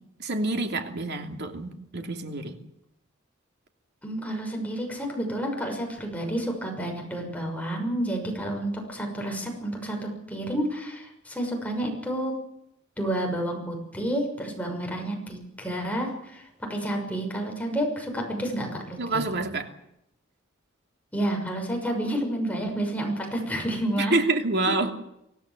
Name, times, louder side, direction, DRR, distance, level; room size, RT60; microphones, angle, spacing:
voice 1, 0.2-2.6 19.0-19.7 24.0-24.9, right 2 dB, 55° right, 5 dB, 2.9 m, -27 dB
voice 2, 4.0-12.3 13.0-16.4 16.7-19.3 21.1-24.2, right 1 dB, 5° left, 1 dB, 6.4 m, -30 dB
25.0 x 17.5 x 7.7 m, 0.80 s
head